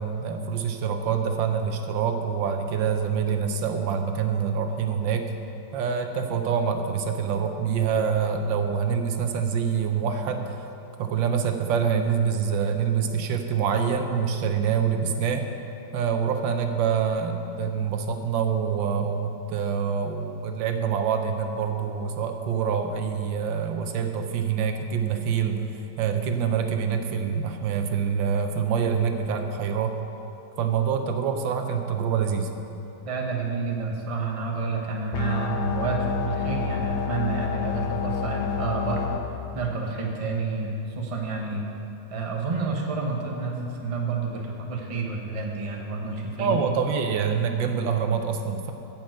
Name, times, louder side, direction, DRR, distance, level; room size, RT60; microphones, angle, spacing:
voice 1, 0.0-5.3 5.7-10.6 11.0-15.5 15.9-25.6 26.0-29.9 30.6-32.5 46.4-48.7, right 6 dB, 85° right, 6 dB, 1.5 m, -26 dB
voice 2, 33.0-39.1 39.5-41.7 42.1-46.6, right 4 dB, 25° right, 0 dB, 0.9 m, -29 dB
sound 1, 35.1-39.2, left 6 dB, 80° left, 1.5 m, -28 dB
9.3 x 7.3 x 7.7 m, 2.9 s
omnidirectional pair, 2.0 m